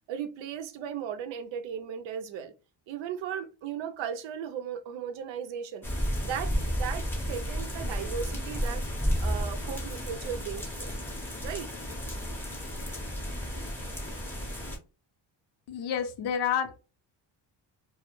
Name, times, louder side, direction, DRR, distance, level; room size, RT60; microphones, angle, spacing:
voice 1, 0.1-2.5 2.9-5.9 6.2-8.8 9.2-10.9 11.4-11.7, right 8 dB, 75° right, 0.6 m, -36 dB
sound 1, 5.8-14.8, equal, 5° left, 0.6 m, -32 dB
voice 2, 15.7-16.8, left 8 dB, 60° left, 0.6 m, -29 dB
2.1 x 2.0 x 2.9 m
cardioid pair, 100°, 46 cm